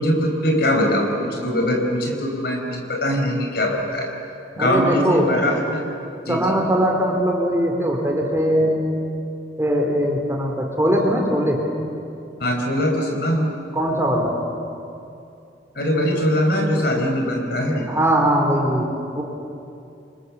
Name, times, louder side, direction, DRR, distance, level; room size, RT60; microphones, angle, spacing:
voice 1, 0.0-4.1 4.5-5.8 6.3-6.6 12.4-13.5 15.7-17.9, left 1 dB, 60° left, 3 dB, 4.5 m, -22 dB
voice 2, 4.6-5.3 6.3-8.8 9.6-11.6 13.7-14.3 17.9-18.9 19.1-19.2, equal, 15° right, 1 dB, 3.5 m, -20 dB
28.5 x 24.0 x 7.3 m, 2.6 s
head